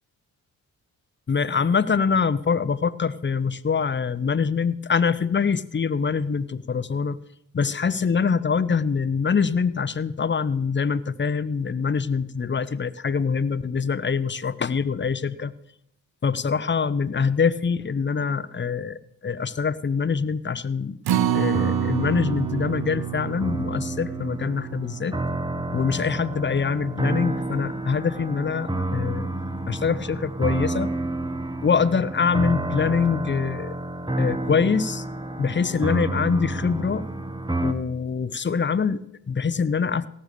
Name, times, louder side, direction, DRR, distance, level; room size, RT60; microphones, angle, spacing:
voice 1, 1.3-7.2 7.5-15.5 16.2-21.0 21.3-25.2 25.7-29.3 29.7-30.9 31.6-33.7 34.2-35.0 35.4-37.0 37.6-40.1, left 5 dB, 30° left, 14 dB, 0.9 m, -24 dB
Acoustic guitar, 21.0-27.4 27.8-27.9 28.3-28.4, right 11 dB, 75° right, 1.0 m, -29 dB
sound 1, 21.1-37.7, right 2 dB, 10° right, 1.2 m, -30 dB
17.0 x 6.9 x 6.8 m, 0.74 s
supercardioid pair, 55°, 37 cm